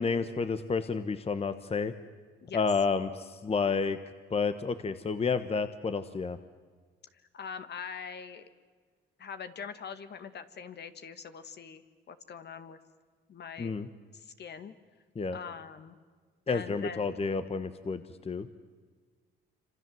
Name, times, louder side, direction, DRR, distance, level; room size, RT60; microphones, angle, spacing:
voice 1, 0.0-1.9 2.5-4.0 4.3-6.4 13.6-13.9 15.1-15.4 16.5-18.5, left 5 dB, 30° left, 11 dB, 1.2 m, -30 dB
voice 2, 7.3-8.5 9.2-11.8 12.1-12.8 13.3-13.8 14.1-14.7 15.3-16.0 16.5-17.1, left 6 dB, 60° left, 10 dB, 1.9 m, -43 dB
27.0 x 26.0 x 7.8 m, 1.5 s
cardioid pair, 90°, 20 cm